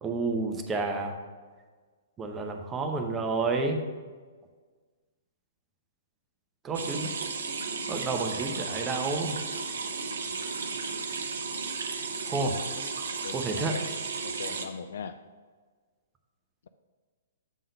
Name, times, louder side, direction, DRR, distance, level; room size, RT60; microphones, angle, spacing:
voice 1, 0.0-1.1 2.2-3.8 6.6-7.1 7.9-9.4 12.2-12.6 13.3-13.8, right 3 dB, 20° right, 4 dB, 0.8 m, -30 dB
sound 1, 6.7-14.7, right 4 dB, 65° right, 0.7 m, -34 dB
voice 2, 13.2-13.9 14.2-15.2, left 6 dB, 60° left, 10 dB, 0.3 m, -39 dB
8.1 x 3.8 x 5.3 m, 1.5 s
figure-of-eight pair, 115°, 0 cm